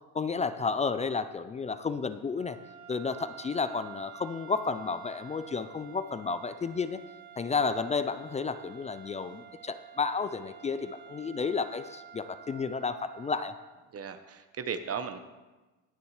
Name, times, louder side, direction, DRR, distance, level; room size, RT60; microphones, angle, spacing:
voice 1, 0.1-2.6 2.9-7.0 7.4-13.5, left 5 dB, 20° left, 12 dB, 0.3 m, -32 dB
sound 1, 2.3-13.8, right 10 dB, 90° right, 2.1 m, -50 dB
voice 2, 13.9-15.2, right 6 dB, 35° right, 9 dB, 0.8 m, -36 dB
20.5 x 7.0 x 3.2 m, 1.2 s
supercardioid pair, 90°, 43 cm